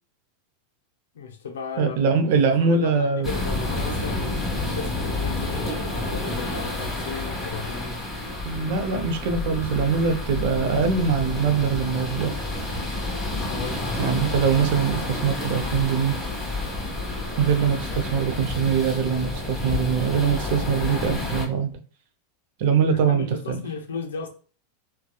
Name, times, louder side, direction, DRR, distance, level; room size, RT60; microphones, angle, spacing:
voice 1, 1.1-8.0 13.5-13.9 22.9-24.3, left 5 dB, 85° left, 0.5 m, -35 dB
voice 2, 1.8-3.3 8.4-12.4 14.0-16.2 17.4-21.7 22.6-23.6, right 6 dB, 65° right, 0.5 m, -23 dB
sound 1, 3.2-21.5, left 2 dB, 10° left, 1.2 m, -29 dB
2.8 x 2.2 x 2.3 m
hypercardioid pair, 110°, 0 cm